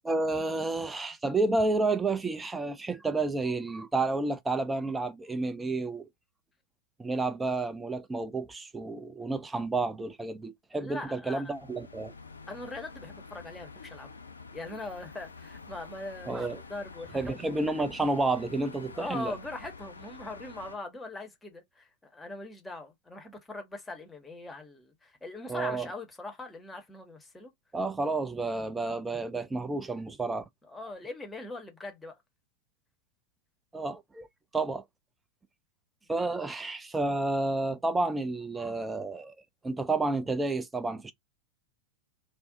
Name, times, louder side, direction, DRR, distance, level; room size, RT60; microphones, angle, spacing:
voice 1, 0.0-6.1 7.0-12.1 16.3-16.6 17.1-19.3 25.5-25.9 27.7-30.4 33.7-34.3 34.5-34.8 36.1-39.4 39.6-41.1, right 3 dB, 10° right, 0.4 m, -30 dB
voice 2, 10.7-11.5 12.5-14.1 14.5-17.4 18.9-27.5 30.7-32.2, left 2 dB, 10° left, 0.8 m, -41 dB
sound 1, 11.4-20.8, left 4 dB, 80° left, 0.4 m, -48 dB
2.5 x 2.0 x 3.7 m
figure-of-eight pair, 90°, 0 cm